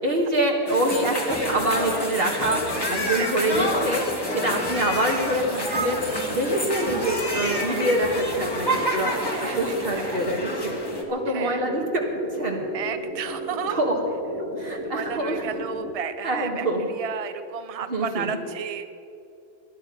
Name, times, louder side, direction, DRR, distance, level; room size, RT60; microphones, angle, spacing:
voice 1, 0.0-2.6 2.9-4.0 4.3-6.0 6.3-9.1 9.6-10.8 11.1-12.0 12.3-12.6 13.7-14.0 14.6-15.4 16.2-16.9 17.9-18.3, right 1 dB, 65° right, 0 dB, 1.9 m, -25 dB
sound 1, 0.7-11.0, equal, 25° left, 1.8 m, -28 dB
voice 2, 4.5-5.0 6.0-6.6 7.4-7.5 9.1-10.3 11.3-11.6 12.7-13.8 14.8-18.9, right 7 dB, 40° right, 10 dB, 0.7 m, -34 dB
sound 2, 6.3-15.9, equal, 40° left, 1.9 m, -34 dB
20.0 x 12.0 x 5.5 m, 2.7 s
omnidirectional pair, 1.1 m